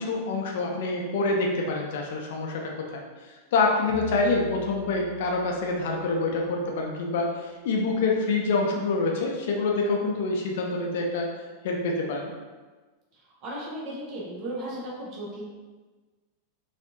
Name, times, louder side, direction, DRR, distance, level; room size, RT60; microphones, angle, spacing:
voice 1, 0.0-3.0 3.5-11.3 11.6-12.3, left 3 dB, 55° left, 0 dB, 0.5 m, -26 dB
sound 1, 3.9-6.6, left 4 dB, 5° right, 1.2 m, -42 dB
voice 2, 13.4-15.4, right 1 dB, 40° right, -5 dB, 1.2 m, -35 dB
4.2 x 2.6 x 2.7 m, 1.3 s
figure-of-eight pair, 90°, 0 cm